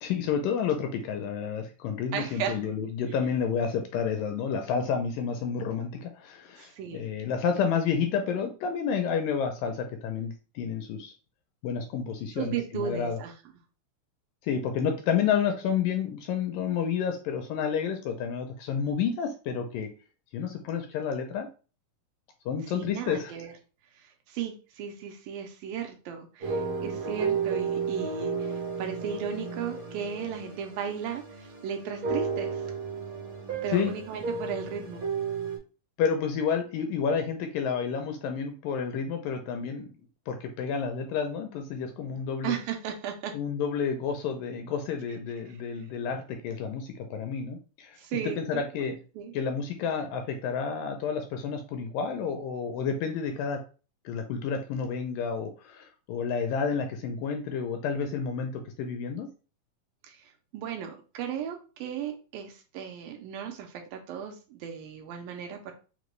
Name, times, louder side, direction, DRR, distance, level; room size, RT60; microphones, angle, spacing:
voice 1, 0.0-11.1 11.6-13.2 14.4-19.9 20.3-21.5 22.5-23.3 33.7-33.9 36.0-39.9 40.3-42.6 43.3-48.0 48.4-48.9 49.3-53.6 54.1-59.3, left 6 dB, 80° left, 5 dB, 2.0 m, -30 dB
voice 2, 2.1-2.6 6.6-7.1 12.4-13.3 22.7-23.5 24.0-32.6 33.6-35.0 42.4-43.3 48.0-49.3 60.1-60.2 60.5-65.7, right 8 dB, 80° right, 4 dB, 2.3 m, -36 dB
sound 1, 26.4-35.6, right 5 dB, 65° right, 1.2 m, -33 dB
5.8 x 2.2 x 3.1 m, 0.35 s
omnidirectional pair, 4.2 m